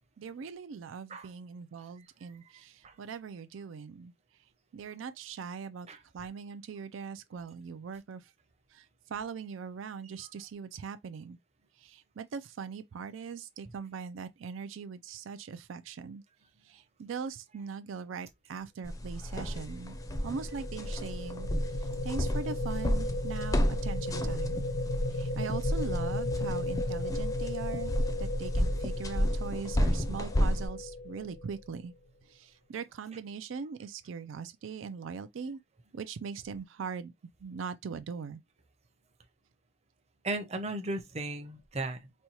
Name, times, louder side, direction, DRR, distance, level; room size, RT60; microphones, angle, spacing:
voice 1, 0.2-4.1 4.7-5.9 6.1-8.2 8.7-11.4 11.8-16.2 16.7-20.0 20.2-21.5 21.8-24.6 25.1-27.9 28.2-31.9 32.3-35.6 35.9-37.1 37.4-38.4, right 6 dB, 90° right, 0.4 m, -41 dB
sound 1, 18.8-30.7, equal, 20° left, 0.5 m, -32 dB
sound 2, 19.7-31.9, left 1 dB, 65° left, 0.8 m, -35 dB
voice 2, 40.2-42.1, right 2 dB, 35° right, 0.7 m, -36 dB
4.3 x 2.3 x 2.9 m
head